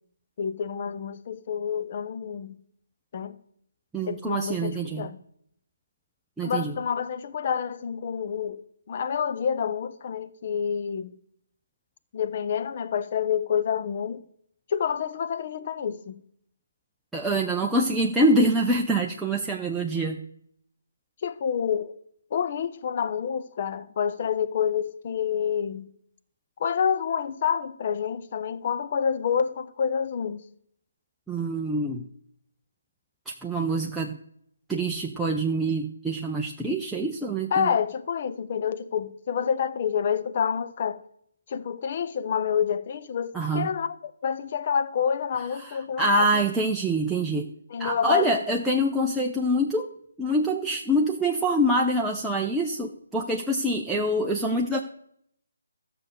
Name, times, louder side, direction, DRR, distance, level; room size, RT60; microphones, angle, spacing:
voice 1, 0.4-2.6 3.1-3.4 4.1-5.2 6.4-8.6 8.9-11.1 12.1-14.2 14.7-16.2 21.2-22.0 22.3-25.9 26.6-30.4 37.5-41.0 41.5-46.4 47.7-48.3, left 7 dB, 40° left, 0.7 m, -28 dB
voice 2, 3.9-5.1 6.4-6.7 17.1-20.2 31.3-32.0 33.3-34.2 34.7-37.7 43.3-43.7 45.6-47.5 47.8-49.9 50.2-54.8, right 1 dB, 5° right, 0.6 m, -25 dB
13.5 x 6.7 x 6.6 m
figure-of-eight pair, 145°, 0 cm